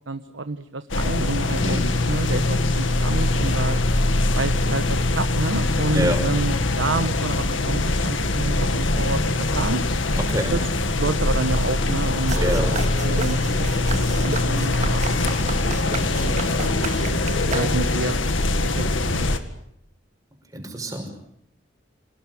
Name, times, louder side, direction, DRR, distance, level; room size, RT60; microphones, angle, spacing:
voice 1, 0.1-1.8 2.0-3.8 4.3-9.2 9.5-9.8 10.5-10.7 11.0-12.6 13.0-15.2 15.5-16.9 17.3-18.3 18.6-18.8 19.1-19.3, right 3 dB, 80° right, 10 dB, 1.1 m, -29 dB
sound 1, 0.9-19.4, left 2 dB, 90° left, 2.0 m, -22 dB
voice 2, 1.5-1.9 5.9-6.2 10.2-10.5 12.4-12.7 20.5-21.1, equal, 20° right, 4 dB, 5.6 m, -26 dB
sound 2, 12.3-18.1, right 3 dB, 40° right, 1.9 m, -32 dB
27.5 x 18.0 x 9.2 m, 0.77 s
head